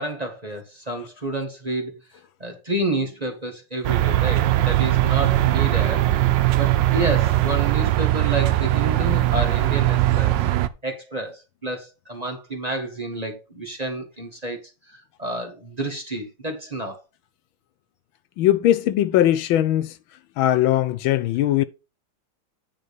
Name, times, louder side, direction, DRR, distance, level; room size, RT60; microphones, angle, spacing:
voice 1, 0.0-2.0 2.4-6.0 6.5-10.3 10.8-14.6 14.9-17.0, right 1 dB, 20° right, 1.4 m, -29 dB
sound 1, 3.8-10.7, right 15 dB, 75° right, 1.3 m, -20 dB
voice 2, 18.4-19.9 20.4-21.6, left 13 dB, 90° left, 1.5 m, -20 dB
9.6 x 3.3 x 6.8 m
omnidirectional pair, 2.1 m